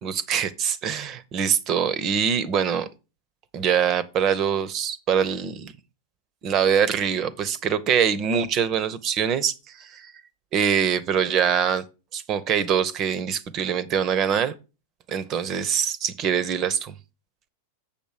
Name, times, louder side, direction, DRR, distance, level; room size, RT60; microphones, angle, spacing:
voice 1, 0.0-2.9 3.5-5.7 6.4-10.1 10.5-11.8 12.1-14.5 15.1-16.9, right 7 dB, 35° right, 0.8 m, -24 dB
7.4 x 6.8 x 4.8 m
figure-of-eight pair, 90°, 0 cm